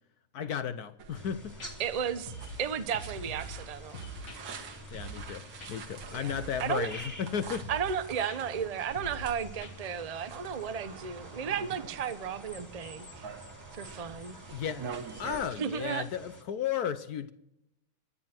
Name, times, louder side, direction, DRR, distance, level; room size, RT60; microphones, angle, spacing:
voice 1, 0.3-1.5 4.9-7.7 14.5-14.9 15.2-17.3, left 8 dB, 65° left, 1.0 m, -34 dB
sound 1, 1.0-15.5, right 5 dB, 70° right, 2.2 m, -46 dB
sound 2, 1.1-16.4, left 1 dB, 10° left, 1.8 m, -49 dB
sound 3, 1.6-1.7 2.3-2.6 2.9-3.6 3.9-4.4 4.9-5.3 5.6-5.7 6.3-6.6 6.9-7.1 7.6-8.0 8.3-8.4 8.9-9.3 9.6-9.7, right 1 dB, 45° left, 1.9 m, -43 dB
voice 2, 1.8-2.3 2.6-4.0 6.1-6.9 7.7-13.3 13.7-14.4 15.6-16.0, right 7 dB, 50° right, 0.4 m, -34 dB
25.5 x 9.9 x 4.5 m
omnidirectional pair, 2.3 m